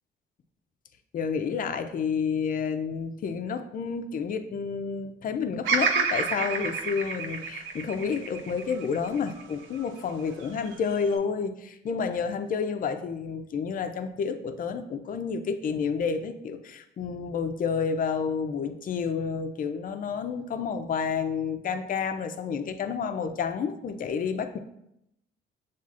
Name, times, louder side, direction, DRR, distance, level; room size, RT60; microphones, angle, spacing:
voice 1, 1.1-24.6, left 6 dB, 45° left, 8 dB, 0.4 m, -30 dB
Bird vocalization bird call bird song, 5.6-9.9 10.4-11.2, right 5 dB, 85° right, 0.5 m, -29 dB
7.0 x 2.4 x 2.4 m, 0.81 s
cardioid pair, 90°, 20 cm